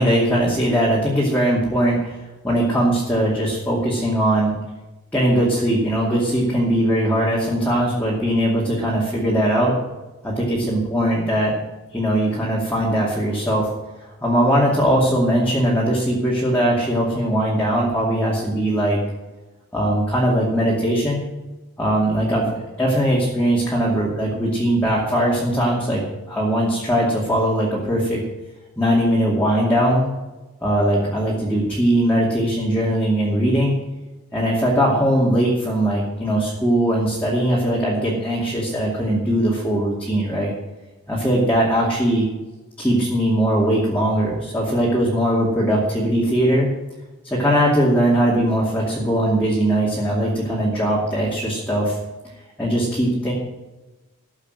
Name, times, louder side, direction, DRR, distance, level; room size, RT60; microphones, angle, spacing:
voice 1, 0.0-2.2 2.4-4.5 5.1-9.8 10.2-11.6 11.9-13.7 14.0-19.0 19.7-21.2 21.8-26.0 26.3-28.2 28.8-30.1 30.6-33.8 34.3-40.5 41.1-42.3 42.8-46.7 47.3-52.0 52.6-53.3, right 1 dB, 5° left, -6 dB, 2.5 m, -20 dB
14.0 x 7.3 x 7.8 m, 1.1 s
head